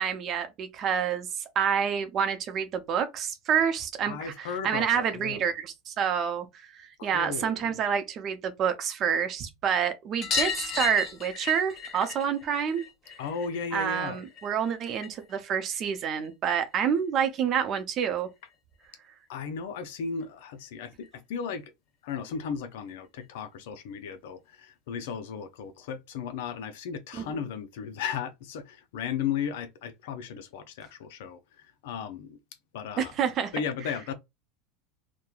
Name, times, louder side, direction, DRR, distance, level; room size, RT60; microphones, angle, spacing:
voice 1, 0.0-6.5 6.8-12.8 13.7-18.3 27.1-27.4 33.0-33.5, right 7 dB, 40° right, 0.6 m, -28 dB
voice 2, 4.0-5.4 7.0-7.8 13.2-14.2 19.3-21.7 22.0-32.4 32.7-33.1 33.5-34.1, left 7 dB, 75° left, 0.5 m, -35 dB
sound 1, 10.2-15.3 15.6-16.8 18.1-18.2 18.4-18.5 18.8-18.9 20.2-20.3 20.6-20.7 21.0-21.1 22.4-22.5 23.2-23.3, left 6 dB, 40° left, 0.7 m, -35 dB
3.0 x 2.1 x 2.3 m
supercardioid pair, 110°, 0 cm